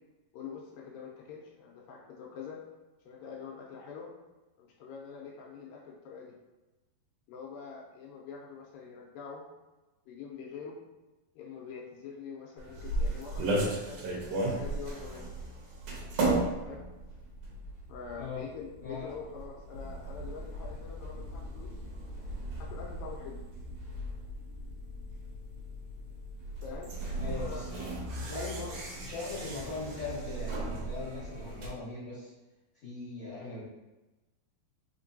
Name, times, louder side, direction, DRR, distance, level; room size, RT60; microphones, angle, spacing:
voice 1, 0.3-2.6 3.1-4.1 4.6-6.4 7.3-9.4 10.1-10.8 11.4-15.3 16.7-16.8 17.9-21.7 22.7-23.4 26.6-26.9 27.3-27.6 28.3-28.8, left 6 dB, 80° left, -2 dB, 2.2 m, -45 dB
sound 1, 12.6-31.7, right 2 dB, 80° right, 1.4 m, -36 dB
voice 2, 18.8-19.3 27.2-27.9 28.2-28.7 29.0-32.3 32.8-33.6, left 3 dB, 55° left, -12 dB, 2.0 m, -40 dB
5.0 x 3.6 x 2.6 m, 1.1 s
omnidirectional pair, 4.3 m